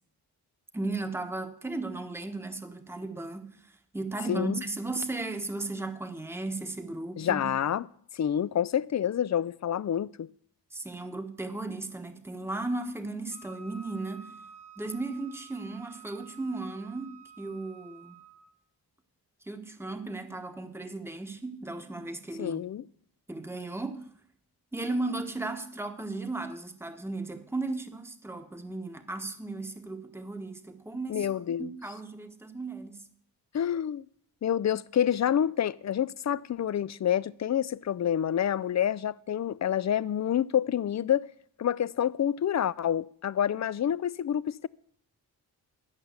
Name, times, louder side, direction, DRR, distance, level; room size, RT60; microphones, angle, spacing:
voice 1, 0.7-7.5 10.7-14.4 14.8-18.2 19.4-22.6 23.3-24.1 24.7-33.1, right 2 dB, 5° right, 1.2 m, -36 dB
voice 2, 7.2-7.8 8.1-10.3 22.4-22.8 31.1-31.7 33.5-34.1 34.4-41.3 41.6-44.7, left 9 dB, 40° left, 0.5 m, -28 dB
Wind instrument woodwind instrument, 13.3-18.5, right 6 dB, 85° left, 1.7 m, -51 dB
11.5 x 5.7 x 8.1 m
cardioid pair, 50°, 42 cm